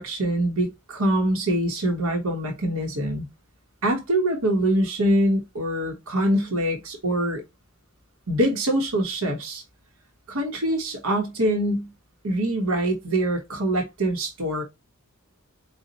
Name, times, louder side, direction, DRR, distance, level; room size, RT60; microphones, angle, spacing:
voice 1, 0.0-3.3 3.8-7.4 8.3-9.6 10.3-11.9 12.2-14.6, right 1 dB, 70° right, 1.0 m, -24 dB
4.1 x 2.2 x 3.9 m
head